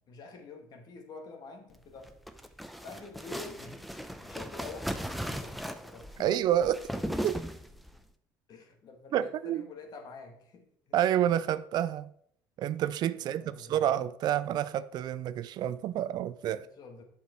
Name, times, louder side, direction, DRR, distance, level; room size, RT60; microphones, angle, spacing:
voice 1, 0.0-2.1 2.8-6.4 8.5-11.0 13.1-14.0 16.5-17.0, left 4 dB, 55° left, 2.0 m, -48 dB
sound 1, 2.0-8.0, equal, ahead, 0.7 m, -37 dB
voice 2, 6.2-6.9 7.2-7.4 9.1-9.6 10.9-12.1 12.6-16.7, right 11 dB, 60° right, 0.5 m, -29 dB
7.4 x 5.9 x 4.4 m
supercardioid pair, 80°, 8 cm